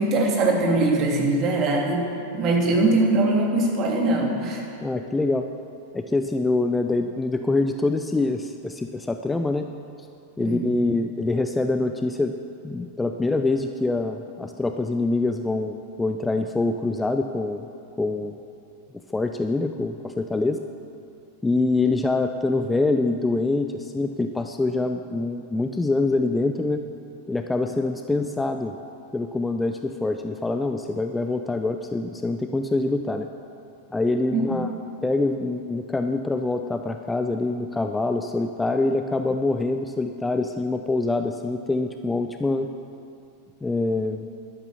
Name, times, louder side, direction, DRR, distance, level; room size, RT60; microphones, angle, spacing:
voice 1, 0.0-2.1 2.3-4.6 10.4-10.6 34.3-34.6, right 2 dB, 35° right, -1 dB, 2.9 m, -22 dB
voice 2, 4.8-5.5 5.9-9.7 10.4-12.3 12.6-17.6 18.0-18.4 19.1-20.6 21.4-26.8 27.3-28.7 29.1-33.3 33.9-34.7 35.0-42.7 43.6-44.3, left 2 dB, 10° left, 6 dB, 0.5 m, -25 dB
12.0 x 11.0 x 7.1 m, 2.6 s
figure-of-eight pair, 90°, 0 cm